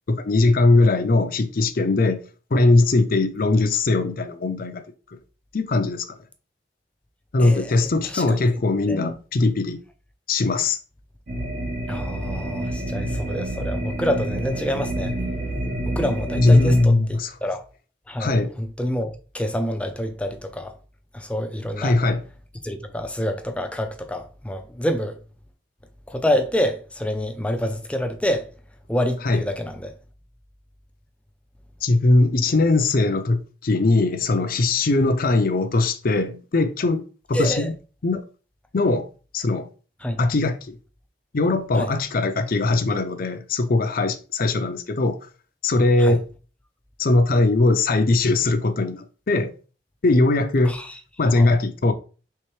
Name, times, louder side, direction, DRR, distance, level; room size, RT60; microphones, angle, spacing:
voice 1, 0.1-4.8 5.5-6.1 7.3-9.8 10.3-10.8 16.4-17.3 18.2-18.5 21.8-22.2 29.2-29.4 31.8-37.0 37.3-37.7 38.0-38.2 38.7-39.1 39.3-39.7 40.2-40.7 41.3-45.2 45.6-46.2 47.0-49.5 50.0-50.7 51.2-51.9, left 2 dB, 50° left, 0.5 m, -20 dB
voice 2, 7.4-8.4 8.9-9.2 11.9-15.2 15.8-17.6 18.1-20.7 21.1-22.0 22.6-25.2 26.1-28.5 28.9-29.9 37.3-37.7 40.0-40.2 41.8-41.9 46.0-46.2 50.6-50.9 51.2-51.5, equal, 5° left, 0.5 m, -27 dB
sound 1, 11.3-16.8, right 1 dB, 55° right, 1.1 m, -28 dB
4.5 x 3.2 x 3.1 m
head